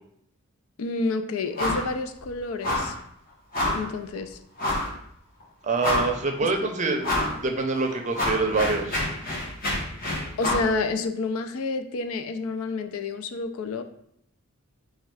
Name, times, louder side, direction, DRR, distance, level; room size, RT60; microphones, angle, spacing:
voice 1, 0.8-3.0 3.7-4.4 6.6-6.7 10.4-13.8, left 3 dB, 85° left, 8 dB, 0.4 m, -29 dB
sound 1, 1.6-1.9 2.2-2.3 2.6-3.0 3.5-3.9 4.6-4.9 5.4-5.5 5.8-6.3 7.0-7.4 7.8-10.7, left 1 dB, 40° left, 1.0 m, -27 dB
voice 2, 5.6-9.0, right 3 dB, 35° right, 4 dB, 0.5 m, -26 dB
4.2 x 2.3 x 4.7 m, 0.70 s
head